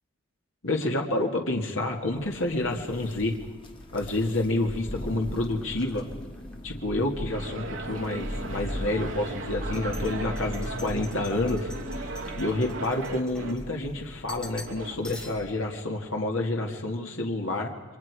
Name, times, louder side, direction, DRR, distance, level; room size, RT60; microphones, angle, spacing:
voice 1, 0.6-3.4 3.9-6.0 6.6-17.7, left 2 dB, 70° left, 1 dB, 2.1 m, -29 dB
Thunder, 2.1-15.7, equal, 25° left, 1.4 m, -39 dB
sound 1, 3.3-7.2 7.5-8.2 8.6-8.7 9.5-13.9 14.3-14.8 15.0-15.6, left 1 dB, 5° left, 1.8 m, -48 dB
sound 2, 7.3-13.5 14.7-14.9, right 3 dB, 65° right, 2.3 m, -38 dB
28.5 x 23.5 x 4.8 m, 1.4 s
head